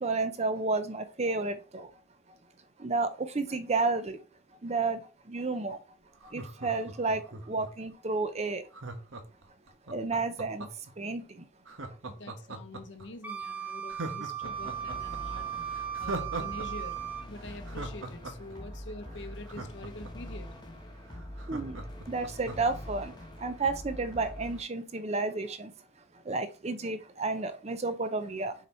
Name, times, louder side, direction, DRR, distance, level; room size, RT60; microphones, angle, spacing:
voice 1, 0.0-1.9 2.8-4.2 4.6-5.0 5.3-5.8 6.3-8.6 9.9-10.7 11.0-11.2 21.5-21.8 22.1-23.1 23.4-25.7 26.3-28.5, right 3 dB, 30° right, 0.6 m, -31 dB
Laughter, 6.2-7.9 8.7-10.9 11.7-13.1 13.4-13.5 13.9-16.7 16.9-17.0 17.4-20.3 20.7-20.8 21.1-22.8 23.2-23.3, right 2 dB, 75° right, 1.2 m, -40 dB
voice 2, 12.1-17.0 17.3-20.6, left 2 dB, 60° left, 1.0 m, -46 dB
Wind instrument woodwind instrument, 13.2-17.3, right 9 dB, 10° right, 1.0 m, -37 dB
sound 1, 14.4-24.6, equal, 20° left, 1.0 m, -44 dB
6.5 x 4.2 x 4.4 m
head